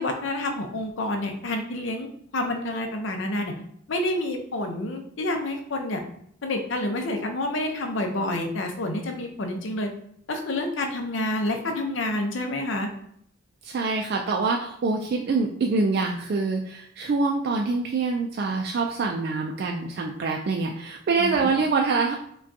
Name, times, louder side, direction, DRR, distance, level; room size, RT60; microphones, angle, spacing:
voice 1, 0.0-3.6 3.9-6.0 6.4-9.9 10.3-12.9 21.2-21.5, left 1 dB, 80° left, 3 dB, 0.6 m, -28 dB
voice 2, 13.6-22.2, right 4 dB, 55° right, 1 dB, 0.3 m, -25 dB
5.0 x 2.3 x 2.7 m, 0.68 s
head